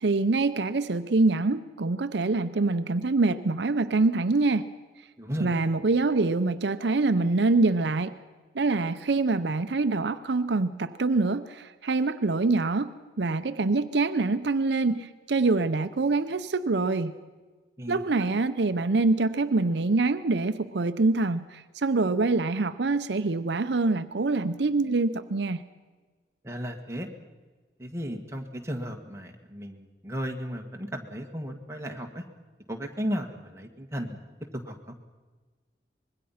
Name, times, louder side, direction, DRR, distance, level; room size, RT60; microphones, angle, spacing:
voice 1, 0.0-4.7 5.4-8.2 8.5-17.1 17.9-25.6, right 3 dB, 75° right, 11 dB, 0.6 m, -25 dB
voice 2, 5.2-5.5 17.8-18.0 26.4-27.1 27.8-32.2 32.7-34.2 34.6-34.8, equal, 15° right, 2 dB, 1.7 m, -34 dB
25.0 x 21.0 x 5.7 m, 1.4 s
head